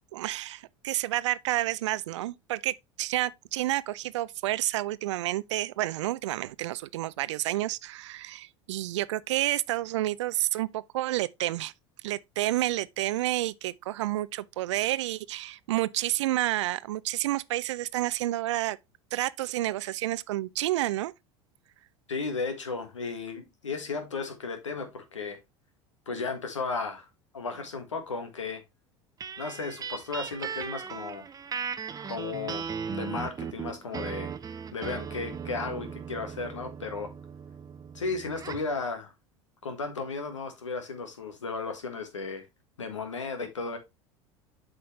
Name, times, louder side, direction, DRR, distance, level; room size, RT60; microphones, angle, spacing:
voice 1, 0.1-11.7 12.0-18.8 19.1-21.1, right 15 dB, 75° right, 0.4 m, -30 dB
voice 2, 22.1-25.4 26.1-27.1 27.3-28.6 29.4-31.3 32.0-34.3 34.7-37.1 37.9-39.1 39.6-42.5 42.8-43.8, left 4 dB, 90° left, 1.6 m, -34 dB
sound 1, 29.2-38.7, right 6 dB, 25° right, 0.6 m, -38 dB
7.9 x 5.5 x 3.2 m
hypercardioid pair, 80°, 15 cm